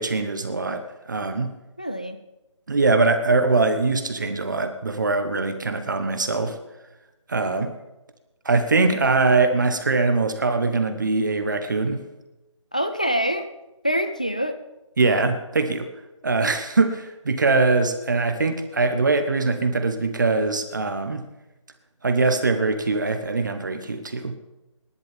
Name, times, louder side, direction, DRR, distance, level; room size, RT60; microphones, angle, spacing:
voice 1, 0.0-1.5 2.7-6.6 7.3-7.7 8.4-12.0 15.0-15.9 16.2-21.2 22.0-24.4, right 3 dB, 35° right, 8 dB, 1.2 m, -22 dB
voice 2, 1.8-2.2 12.7-13.5 13.8-14.6, equal, 15° left, 8 dB, 0.4 m, -25 dB
26.5 x 11.0 x 3.6 m, 1.0 s
figure-of-eight pair, 170°, 17 cm